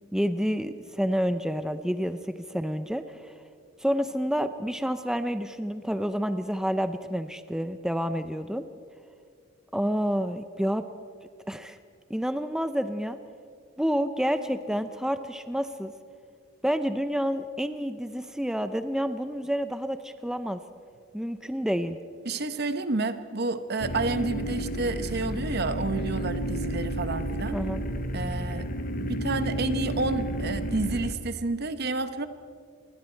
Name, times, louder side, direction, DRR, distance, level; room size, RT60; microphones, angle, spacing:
voice 1, 0.1-3.3 3.8-8.6 9.7-10.9 11.5-11.8 12.1-13.2 13.8-15.9 16.6-20.6 21.1-22.0 27.5-27.8, equal, 5° right, 10 dB, 0.5 m, -29 dB
voice 2, 22.2-27.6 28.1-28.7 29.0-32.3, right 3 dB, 55° right, 11 dB, 1.1 m, -30 dB
sound 1, 23.8-31.1, right 1 dB, 45° left, 1.1 m, -31 dB
27.5 x 21.5 x 4.5 m, 2.3 s
head